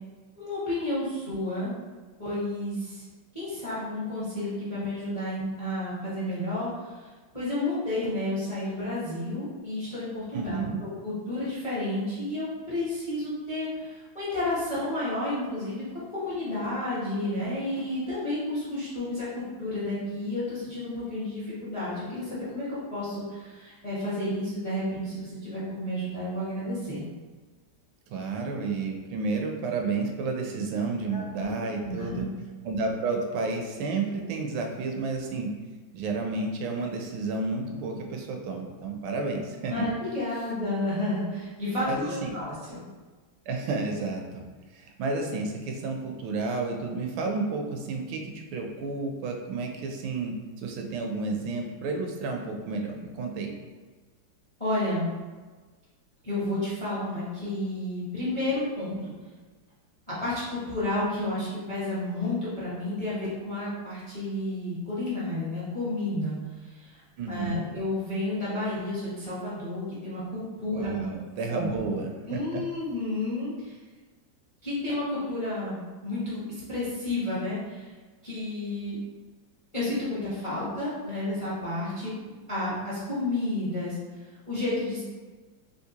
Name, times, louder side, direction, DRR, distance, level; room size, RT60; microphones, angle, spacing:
voice 1, 0.4-1.7 2.2-3.0 3.3-7.1 7.3-27.0 31.1-32.3 39.7-42.8 54.6-55.1 56.2-59.1 60.1-66.3 66.6-67.0 67.3-71.0 71.5-71.7 72.3-73.8 74.6-76.4 76.7-77.9 78.2-79.0 79.7-85.0, left 1 dB, 30° left, -9 dB, 0.5 m, -31 dB
voice 2, 10.3-10.8 28.1-32.3 32.6-35.5 35.9-39.9 41.9-42.5 43.5-44.4 44.7-53.5 67.2-67.7 70.7-72.6, right 3 dB, 85° right, 2 dB, 1.3 m, -31 dB
3.6 x 2.5 x 2.8 m, 1.3 s
omnidirectional pair, 2.1 m